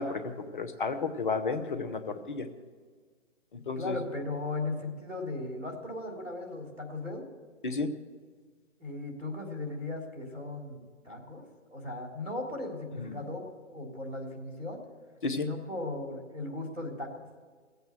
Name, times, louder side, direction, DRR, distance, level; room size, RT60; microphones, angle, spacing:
voice 1, 0.0-2.5 3.5-4.0 7.6-7.9 13.0-13.2 15.2-15.5, left 4 dB, 40° left, 9 dB, 0.9 m, -32 dB
voice 2, 3.8-7.2 8.8-10.8 11.1-11.4 11.7-13.4 13.7-14.8 15.4-17.2, left 2 dB, 85° right, 0 dB, 3.7 m, -37 dB
17.0 x 8.0 x 7.6 m, 1.5 s
figure-of-eight pair, 135°, 37 cm